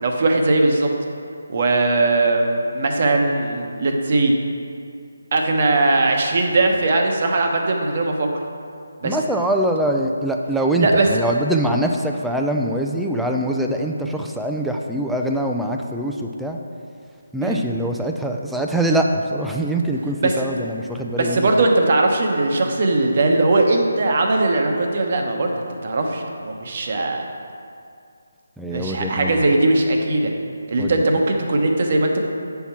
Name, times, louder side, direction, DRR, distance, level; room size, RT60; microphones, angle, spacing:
voice 1, 0.0-0.9 1.5-4.3 5.3-8.3 9.0-9.2 10.8-11.1 17.4-17.6 20.2-20.3 21.2-27.2 28.7-30.3 30.7-32.2, right 2 dB, 45° right, 2 dB, 1.0 m, -19 dB
voice 2, 9.0-16.6 17.3-21.6 28.6-29.4 30.8-31.2, right 1 dB, ahead, 1 dB, 0.4 m, -23 dB
8.0 x 5.8 x 4.4 m, 2.4 s
figure-of-eight pair, 155°, 0 cm